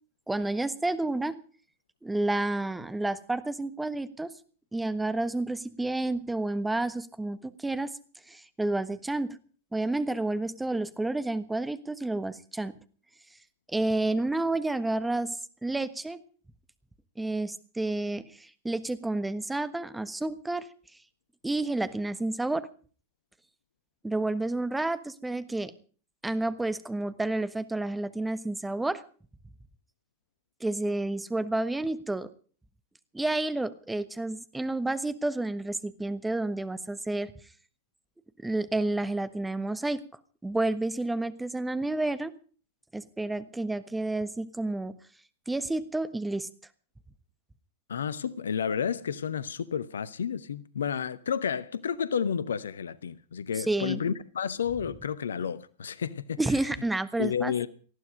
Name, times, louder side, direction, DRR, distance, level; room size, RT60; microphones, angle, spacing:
voice 1, 0.3-1.4 2.0-4.3 4.7-7.9 8.3-9.4 9.7-12.7 13.7-15.4 15.6-16.2 17.2-20.7 21.4-22.7 24.0-25.7 26.2-29.0 30.6-32.3 33.1-37.3 38.4-40.0 40.4-42.3 42.9-44.9 45.5-46.5 53.6-54.1 56.4-57.7, right 2 dB, 5° right, 1.3 m, -30 dB
voice 2, 47.9-56.4 57.2-57.7, left 7 dB, 70° left, 0.9 m, -31 dB
19.0 x 14.5 x 5.1 m
figure-of-eight pair, 90°, 0 cm